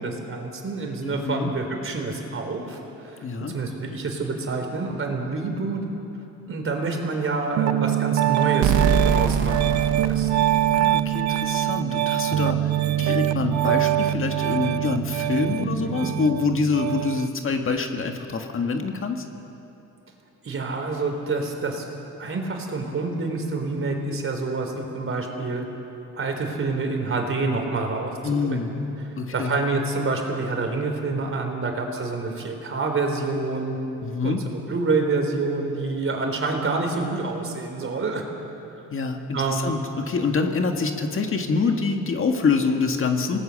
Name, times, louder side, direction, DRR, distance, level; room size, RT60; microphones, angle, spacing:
voice 1, 0.0-3.2 3.5-5.8 6.5-10.5 15.4-16.1 20.4-21.8 22.2-25.6 26.1-28.6 29.0-33.8 34.2-38.2 39.3-39.7, right 3 dB, 45° right, 3 dB, 3.8 m, -27 dB
voice 2, 1.0-1.5 3.2-3.5 10.7-12.7 13.0-19.2 28.2-28.8 29.2-29.6 34.0-34.4 38.9-43.4, left 4 dB, 45° left, 4 dB, 1.8 m, -26 dB
Piano, 7.6-17.3, right 13 dB, 65° right, 0.6 m, -24 dB
sound 1, 8.6-11.3, right 6 dB, 80° right, 1.4 m, -24 dB
26.5 x 19.0 x 6.6 m, 2.9 s
cardioid pair, 90°, 30 cm